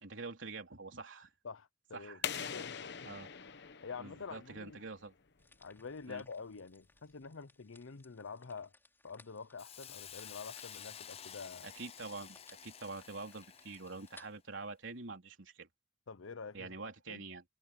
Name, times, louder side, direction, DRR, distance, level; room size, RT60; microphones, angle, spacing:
voice 1, 0.0-1.3 1.9-2.5 3.1-3.3 4.0-5.1 6.1-6.2 11.6-12.4 12.6-15.7 16.5-17.4, right 3 dB, 70° right, 3.5 m, -46 dB
voice 2, 1.4-3.1 3.8-4.8 5.6-8.7 9.0-11.7 16.1-16.7 17.1-17.2, left 5 dB, 85° left, 0.8 m, -47 dB
sound 1, 2.2-4.9, left 8 dB, 60° left, 1.0 m, -42 dB
sound 2, 5.4-14.3, left 2 dB, 10° left, 5.4 m, -64 dB
Hiss, 9.6-14.3, left 9 dB, 30° left, 0.6 m, -51 dB
head